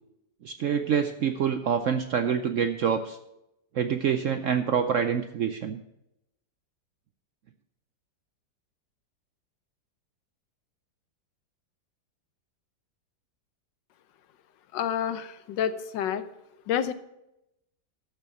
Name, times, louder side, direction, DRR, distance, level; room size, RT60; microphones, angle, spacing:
voice 1, 0.4-3.2 3.7-5.8, right 7 dB, 70° right, 8 dB, 0.7 m, -26 dB
voice 2, 14.7-16.2 16.7-16.9, left 9 dB, 90° left, 12 dB, 1.4 m, -28 dB
12.5 x 6.9 x 5.9 m, 0.87 s
omnidirectional pair, 1.9 m